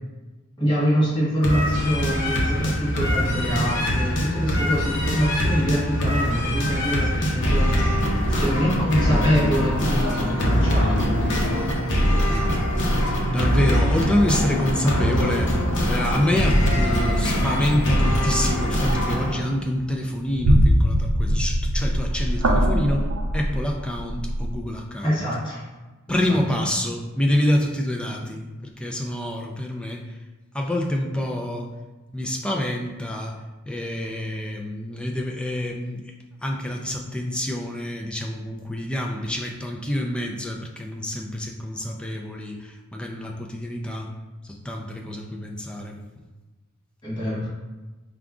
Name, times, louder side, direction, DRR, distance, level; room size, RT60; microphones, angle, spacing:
voice 1, 0.6-7.9 8.1-11.4 25.0-25.6 26.1-26.2 47.0-47.5, equal, 25° left, -9 dB, 1.3 m, -25 dB
sound 1, 1.4-19.4, equal, 60° left, 0.8 m, -22 dB
voice 2, 13.3-15.6 15.8-23.1 23.3-25.2 26.1-30.2 30.5-31.7 32.1-36.1 36.4-44.1 44.4-46.0, left 1 dB, 5° left, 1 dB, 0.4 m, -27 dB
sound 2, 16.0-16.4 17.6-17.7 18.2-18.5 18.9-19.2 19.6-24.6, equal, 75° right, 0.6 m, -22 dB
4.9 x 2.3 x 3.6 m, 1.2 s
head